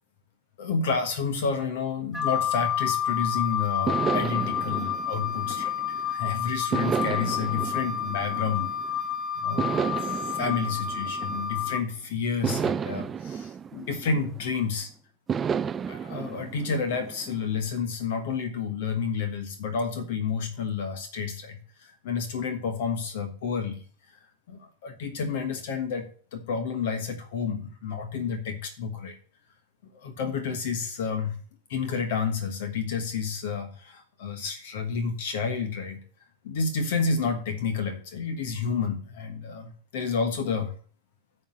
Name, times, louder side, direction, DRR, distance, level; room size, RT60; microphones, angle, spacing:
voice 1, 0.6-8.7 9.3-14.9 15.9-23.8 24.5-29.1 29.9-31.4 31.7-36.0 36.4-40.7, left 5 dB, 55° left, 7 dB, 1.4 m, -30 dB
Wind instrument woodwind instrument, 2.1-11.8, left 8 dB, ahead, 1.0 m, -29 dB
sound 1, 3.9-6.1 6.7-9.0 9.6-11.8 12.4-14.7 15.3-17.6, right 7 dB, 20° right, 0.3 m, -32 dB
9.1 x 4.6 x 7.5 m, 0.42 s
figure-of-eight pair, 90°, 0 cm